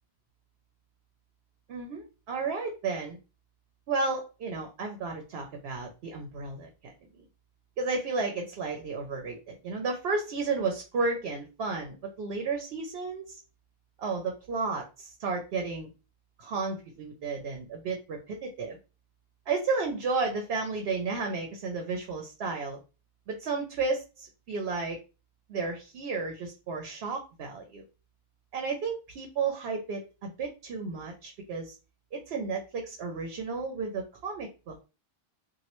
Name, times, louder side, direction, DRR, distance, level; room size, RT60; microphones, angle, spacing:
voice 1, 1.7-3.2 3.9-6.7 7.1-7.2 7.8-13.4 14.0-15.9 16.4-18.8 19.5-22.8 23.3-25.0 25.5-27.8 28.5-31.8 32.1-34.8, right 4 dB, 75° right, 3 dB, 0.8 m, -33 dB
3.0 x 2.4 x 2.9 m, 0.31 s
omnidirectional pair, 1.1 m